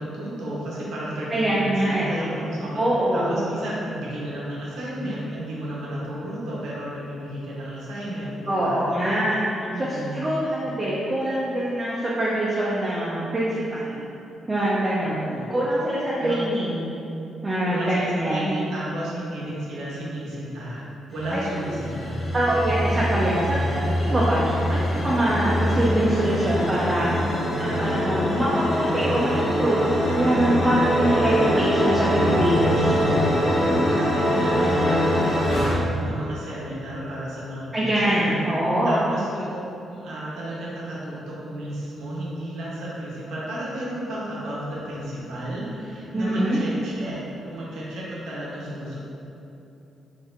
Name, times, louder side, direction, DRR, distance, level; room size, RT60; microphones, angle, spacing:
voice 1, 0.0-8.8 9.7-10.3 15.0-15.6 16.2-16.6 17.7-22.2 33.5-38.3 38.8-39.6 39.9-47.2 47.4-49.0, right 1 dB, 85° right, -7 dB, 0.9 m, -33 dB
voice 2, 1.3-2.4 2.8-3.5 8.5-14.0 14.5-15.2 15.5-16.9 17.4-18.5 21.3-21.4 21.7-21.8 22.3-27.1 27.6-33.0 37.7-39.0 46.1-46.6, right 1 dB, 20° right, -8 dB, 0.5 m, -24 dB
sound 1, 21.1-35.8, equal, 40° left, 0.8 m, -23 dB
4.1 x 3.3 x 2.5 m, 2.9 s
cardioid pair, 130°, 0 cm